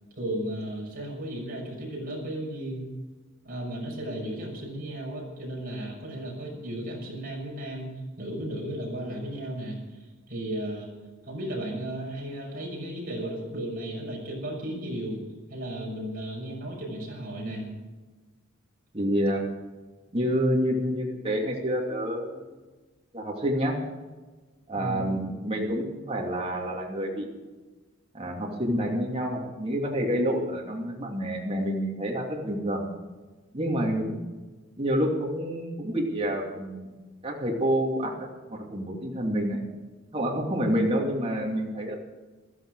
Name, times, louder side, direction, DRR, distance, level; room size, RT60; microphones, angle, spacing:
voice 1, 0.2-2.9 3.4-9.8 10.3-10.9 11.3-15.2 15.5-17.7 24.7-25.1, right 1 dB, 45° right, -2 dB, 6.1 m, -34 dB
voice 2, 18.9-19.4 20.1-22.6 23.1-23.8 24.7-27.4 28.1-32.9 33.5-34.2 34.8-36.9 37.2-39.6 40.1-42.0, equal, 30° right, -1 dB, 2.7 m, -28 dB
15.5 x 13.5 x 4.9 m, 1.3 s
head